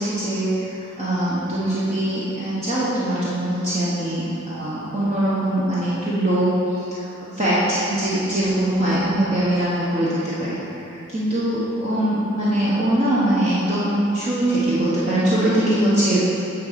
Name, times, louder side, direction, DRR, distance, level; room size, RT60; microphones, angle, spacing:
voice 1, 0.0-16.2, right 1 dB, 35° right, -10 dB, 1.3 m, -22 dB
9.3 x 3.9 x 6.8 m, 2.9 s
head